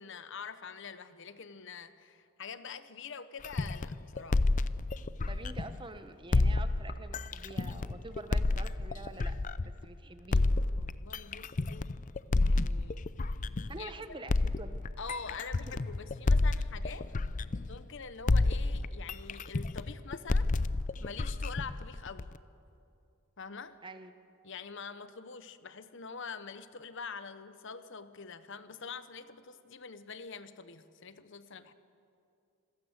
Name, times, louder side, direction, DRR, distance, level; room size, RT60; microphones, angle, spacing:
voice 1, 0.0-4.4 10.7-11.9 12.3-13.1 13.8-14.2 15.0-17.1 17.7-20.5 21.0-22.3 23.4-23.8 24.4-31.7, left 5 dB, 60° left, 12 dB, 1.0 m, -45 dB
sound 1, 3.4-5.9 6.3-9.8 10.3-13.9 14.3-18.0 18.3-22.4, left 2 dB, 40° left, 0.5 m, -30 dB
voice 2, 5.3-9.3 9.6-10.5 13.7-14.8 15.4-15.5 23.8-24.1, right 2 dB, 25° right, 10 dB, 1.0 m, -46 dB
26.5 x 16.0 x 8.0 m, 2.6 s
head